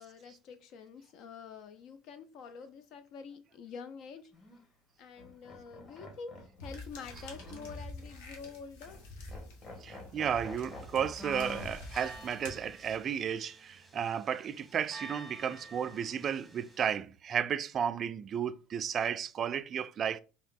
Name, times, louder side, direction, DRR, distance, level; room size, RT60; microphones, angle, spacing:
voice 1, 0.0-4.3 5.0-9.0, left 5 dB, 60° left, 0.4 m, -47 dB
sound 1, 4.3-4.6 5.2-8.1 8.4-8.5 8.8-9.0 9.3-11.8 12.2-12.3 15.5-16.4, left 2 dB, 30° left, 1.8 m, -48 dB
sound 2, 6.6-13.2, left 2 dB, 80° left, 1.2 m, -48 dB
voice 2, 9.8-20.2, right 8 dB, 40° right, 0.3 m, -33 dB
sound 3, 10.2-16.9, right 3 dB, 5° left, 1.0 m, -52 dB
3.5 x 2.8 x 3.6 m
supercardioid pair, 105°, 0 cm